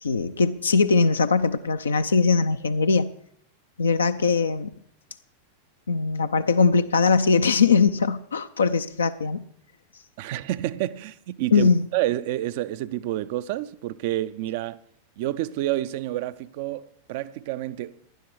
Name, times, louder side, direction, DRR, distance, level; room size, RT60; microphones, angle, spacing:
voice 1, 0.0-3.1 3.8-4.7 5.9-9.4 11.5-11.8, left 4 dB, 75° left, 0.6 m, -21 dB
voice 2, 10.2-14.8 15.2-18.0, right 14 dB, 50° right, 0.6 m, -29 dB
15.5 x 11.0 x 4.8 m
figure-of-eight pair, 90°, 0 cm